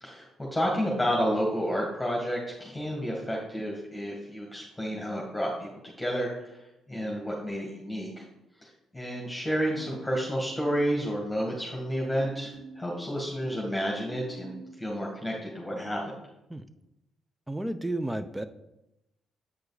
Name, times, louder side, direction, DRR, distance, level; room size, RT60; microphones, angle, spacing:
voice 1, 0.0-6.6 6.9-8.2 8.6-16.2, equal, 10° left, -3 dB, 1.8 m, -31 dB
sound 1, 9.7-14.8, right 2 dB, 85° right, 2.3 m, -46 dB
voice 2, 17.5-18.4, right 1 dB, 10° right, 11 dB, 0.6 m, -32 dB
8.2 x 5.1 x 4.1 m, 0.89 s
cardioid pair, 90°, 0 cm